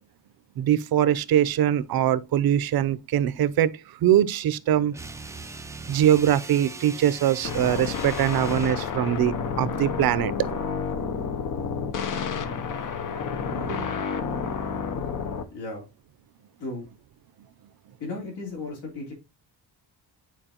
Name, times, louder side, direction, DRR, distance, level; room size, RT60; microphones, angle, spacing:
voice 1, 0.6-3.7 4.0-5.0 5.9-10.5 13.5-13.9, right 11 dB, 60° right, 0.6 m, -22 dB
sound 1, 4.9-8.9, right 3 dB, 10° right, 0.4 m, -40 dB
sound 2, 7.4-15.4, left 6 dB, 50° left, 0.8 m, -30 dB
voice 2, 15.5-15.8 16.6-16.9 18.0-19.1, left 3 dB, 75° left, 3.5 m, -35 dB
9.1 x 4.6 x 2.9 m
cardioid pair, 155°, 41 cm